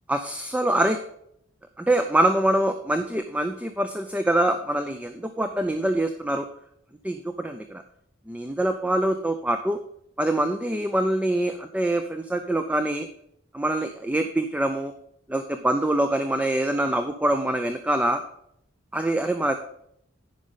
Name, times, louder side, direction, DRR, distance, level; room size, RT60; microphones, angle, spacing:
voice 1, 0.1-1.0 1.8-6.5 7.0-7.8 8.3-9.8 10.2-13.1 13.5-14.9 15.3-18.2 18.9-19.5, right 1 dB, 5° right, 7 dB, 0.4 m, -24 dB
10.0 x 5.2 x 5.5 m, 0.73 s
head